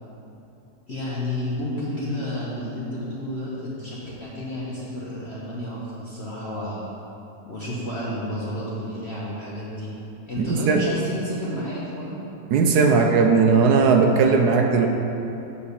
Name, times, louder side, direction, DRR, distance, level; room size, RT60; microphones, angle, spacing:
voice 1, 0.9-6.9 7.5-9.9 10.3-12.2, left 1 dB, 45° left, -7 dB, 1.2 m, -31 dB
voice 2, 10.4-10.8 12.5-14.9, right 5 dB, 75° right, 3 dB, 1.1 m, -18 dB
7.2 x 4.7 x 6.7 m, 3.0 s
omnidirectional pair, 1.8 m